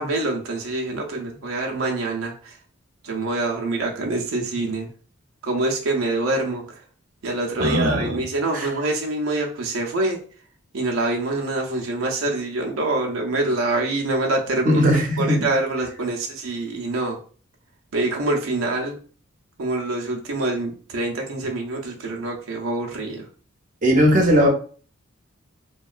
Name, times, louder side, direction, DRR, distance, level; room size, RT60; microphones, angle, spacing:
voice 1, 0.0-2.6 3.0-4.9 5.4-6.8 7.2-10.2 10.7-14.8 15.2-17.2 17.9-19.0 19.6-23.3, right 2 dB, 80° right, 1 dB, 0.5 m, -25 dB
voice 2, 7.6-8.2 8.5-8.7 14.7-15.5 23.8-24.5, equal, 40° right, 0 dB, 0.6 m, -18 dB
2.9 x 2.2 x 2.3 m, 0.41 s
head